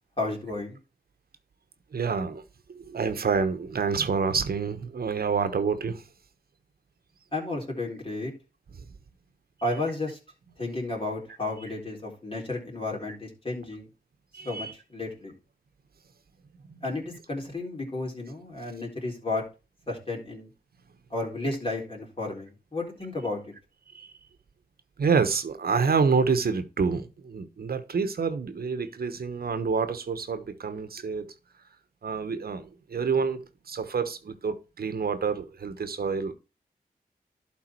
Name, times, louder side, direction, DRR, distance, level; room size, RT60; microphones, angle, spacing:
voice 1, 0.2-0.8 7.3-8.3 9.6-10.2 10.6-13.9 14.5-15.3 16.8-19.4 19.9-20.5 21.1-23.4, left 2 dB, 35° left, 3.8 m, -32 dB
voice 2, 1.9-2.4 2.7-6.0 14.3-14.7 16.7-16.8 23.9-24.1 25.0-31.3 32.0-36.3, right 5 dB, 70° right, 1.1 m, -28 dB
11.5 x 4.0 x 4.5 m
cardioid pair, 60°, 16 cm